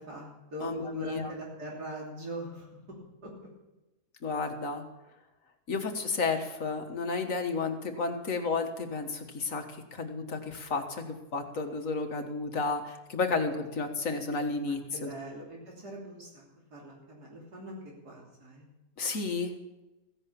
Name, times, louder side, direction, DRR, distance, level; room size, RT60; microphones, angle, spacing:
voice 1, 0.0-2.7 3.2-3.3 14.6-16.4 16.7-17.8 18.0-18.7, right 1 dB, 75° right, -3 dB, 3.7 m, -42 dB
voice 2, 0.6-1.3 4.2-4.8 5.7-15.1 19.0-19.5, left 4 dB, 55° left, 5 dB, 1.9 m, -32 dB
16.0 x 11.0 x 7.0 m, 1.0 s
omnidirectional pair, 1.7 m